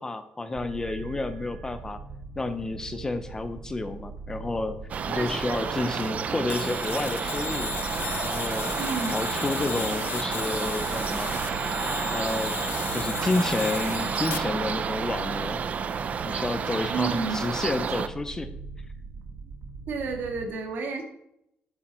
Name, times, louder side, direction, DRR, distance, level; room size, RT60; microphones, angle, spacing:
voice 1, 0.0-2.0 2.4-4.8 5.1-7.7 8.2-8.8 9.1-11.4 12.1-12.5 12.9-15.6 16.2-18.5, left 2 dB, 15° left, 10 dB, 0.7 m, -30 dB
sound 1, 0.5-20.5, right 4 dB, 90° right, 1.7 m, -41 dB
sound 2, 4.9-18.1, right 6 dB, 40° right, 0.6 m, -30 dB
voice 2, 5.1-5.9 8.7-9.2 16.9-17.4 19.9-21.0, right 4 dB, 65° right, 3 dB, 2.3 m, -31 dB
sound 3, 6.5-14.4, left 9 dB, 70° left, 0.8 m, -35 dB
12.0 x 9.0 x 4.4 m, 0.80 s
wide cardioid pair, 180°, 4 cm